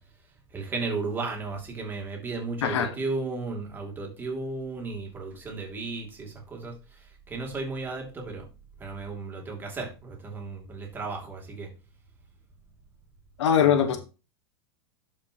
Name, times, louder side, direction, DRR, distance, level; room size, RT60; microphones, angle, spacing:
voice 1, 0.5-6.7 7.3-8.4 8.8-11.7 13.6-14.0, right 3 dB, 15° right, 1 dB, 2.6 m, -34 dB
voice 2, 13.4-14.0, left 8 dB, 85° left, 8 dB, 1.2 m, -21 dB
12.0 x 5.4 x 2.8 m, 0.30 s
supercardioid pair, 150°, 14 cm